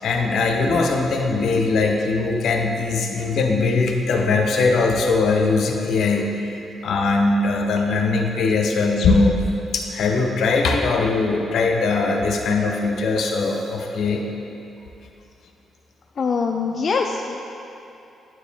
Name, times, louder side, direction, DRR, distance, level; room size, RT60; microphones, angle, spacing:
voice 1, 0.0-6.4 6.8-9.4 9.7-14.2, left 3 dB, 70° left, 2 dB, 0.7 m, -20 dB
voice 2, 16.2-17.4, left 5 dB, 45° left, 2 dB, 0.3 m, -23 dB
9.4 x 4.7 x 3.5 m, 2.8 s
cardioid pair, 95°, 0 cm